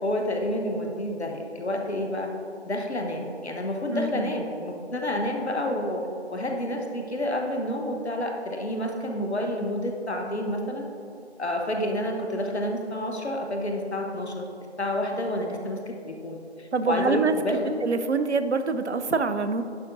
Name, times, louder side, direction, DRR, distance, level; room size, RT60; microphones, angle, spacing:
voice 1, 0.0-2.3 2.6-6.0 6.3-10.8 11.4-14.5 14.8-17.6, left 1 dB, 70° left, 2 dB, 1.0 m, -29 dB
voice 2, 3.9-4.3 16.7-17.4 17.8-19.6, right 4 dB, 75° right, 10 dB, 0.6 m, -25 dB
10.5 x 5.8 x 2.7 m, 2.8 s
figure-of-eight pair, 160°, 34 cm